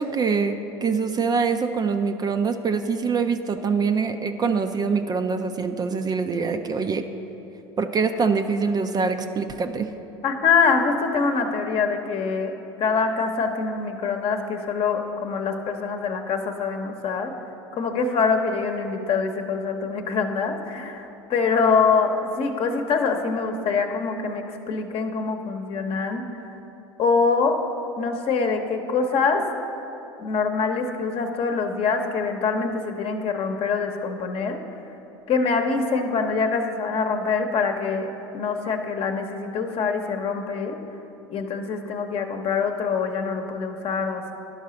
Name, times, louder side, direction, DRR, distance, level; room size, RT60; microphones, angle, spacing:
voice 1, 0.0-7.0 7.8-9.9, right 5 dB, 30° right, 7 dB, 0.5 m, -24 dB
voice 2, 10.2-12.5 12.8-17.3 17.7-26.3 27.0-27.6 28.0-29.4 30.2-34.6 35.3-40.8 41.3-44.3, left 5 dB, 45° left, 4 dB, 0.9 m, -24 dB
11.5 x 5.5 x 5.1 m, 3.0 s
hypercardioid pair, 75°, 14 cm